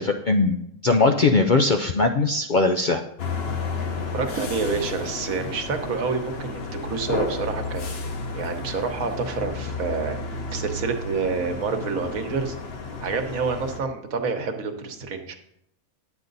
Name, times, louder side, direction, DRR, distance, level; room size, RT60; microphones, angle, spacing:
voice 1, 0.0-3.0, left 3 dB, 85° left, 5 dB, 0.4 m, -20 dB
sound 1, 3.2-13.8, left 3 dB, 45° left, 1.1 m, -32 dB
voice 2, 4.1-10.2 10.5-12.6 13.0-15.4, right 4 dB, 65° right, 6 dB, 1.4 m, -28 dB
10.5 x 8.1 x 4.0 m, 0.79 s
omnidirectional pair, 1.6 m